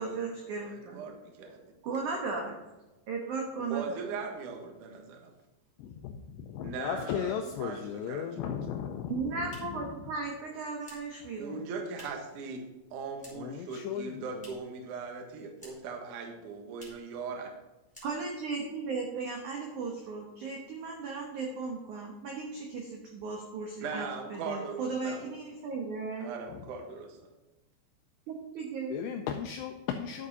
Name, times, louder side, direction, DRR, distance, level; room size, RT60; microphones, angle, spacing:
voice 1, 0.0-1.0 1.8-2.6 3.1-4.0 9.1-11.6 18.0-26.3 28.3-29.0, right 4 dB, 85° right, 1 dB, 1.7 m, -36 dB
voice 2, 0.6-1.7 3.6-5.3 6.6-8.3 11.4-12.6 12.9-17.5 23.8-25.3 26.2-27.3, right 4 dB, 65° right, 3 dB, 2.1 m, -39 dB
voice 3, 5.8-9.2 13.4-14.4 28.9-30.3, left 8 dB, 80° left, 4 dB, 2.6 m, -36 dB
sound 1, 9.1-12.4 12.6-13.6 13.9-14.8 15.1-16.0 16.3-16.4 16.7-17.1 17.5-17.6 17.9-18.5, left 1 dB, ahead, 2.8 m, -55 dB
11.0 x 7.6 x 4.1 m, 1.1 s
omnidirectional pair, 5.4 m